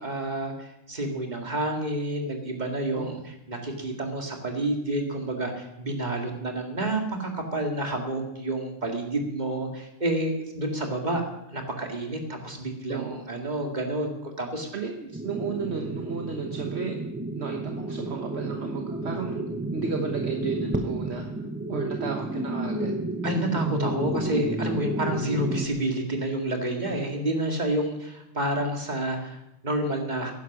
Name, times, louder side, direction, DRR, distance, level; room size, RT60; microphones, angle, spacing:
voice 1, 0.0-3.2 3.5-11.2 11.5-14.7 23.2-30.3, right 1 dB, 35° right, 2 dB, 2.3 m, -29 dB
voice 2, 12.9-13.3 14.7-17.0 17.4-23.0, right 5 dB, 55° right, 3 dB, 1.4 m, -33 dB
sound 1, 15.1-25.7, right 2 dB, 10° right, 0.7 m, -31 dB
15.5 x 11.0 x 6.2 m, 0.87 s
omnidirectional pair, 1.3 m